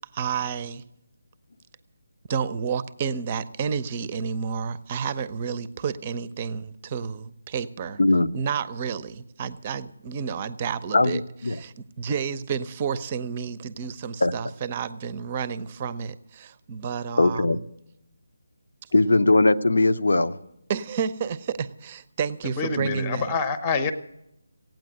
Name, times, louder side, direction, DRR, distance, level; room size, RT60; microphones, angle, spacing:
voice 1, 0.1-0.8 2.3-8.0 8.3-11.2 11.5-17.5 20.7-23.3, right 6 dB, 25° right, 0.6 m, -30 dB
voice 2, 8.0-8.3 10.9-11.6 14.2-14.3 17.2-17.6 18.9-20.4, left 2 dB, 65° left, 0.7 m, -20 dB
voice 3, 22.6-23.9, left 4 dB, 20° left, 0.8 m, -26 dB
16.0 x 9.1 x 7.8 m
figure-of-eight pair, 155°, 0 cm